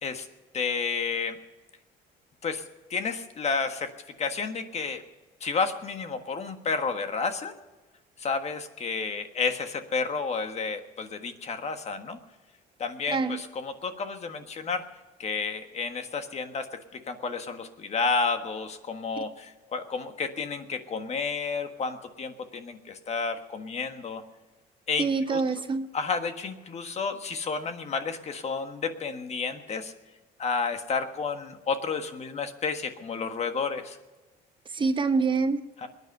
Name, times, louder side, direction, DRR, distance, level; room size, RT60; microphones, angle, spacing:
voice 1, 0.5-1.4 2.4-2.6 2.9-3.9 4.2-5.0 5.4-7.5 8.2-12.2 12.8-14.8 15.2-16.7 16.9-24.2 24.9-25.4 25.9-29.9 30.4-34.0 35.8-35.9, left 5 dB, 40° left, 7 dB, 1.5 m, -31 dB
voice 2, 25.0-25.9 34.7-35.6, right 4 dB, 30° right, 9 dB, 0.9 m, -25 dB
22.0 x 9.7 x 6.6 m, 1.2 s
cardioid pair, 110°, 17 cm